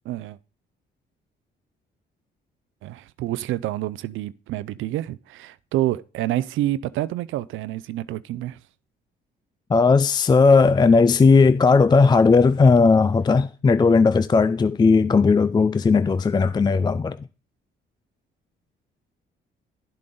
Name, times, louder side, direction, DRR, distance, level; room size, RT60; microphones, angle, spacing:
voice 1, 0.1-0.4 2.8-8.6, right 14 dB, 80° right, 0.5 m, -28 dB
voice 2, 9.7-17.2, left 4 dB, 20° left, 0.4 m, -17 dB
12.0 x 7.6 x 3.9 m
cardioid pair, 90°, 20 cm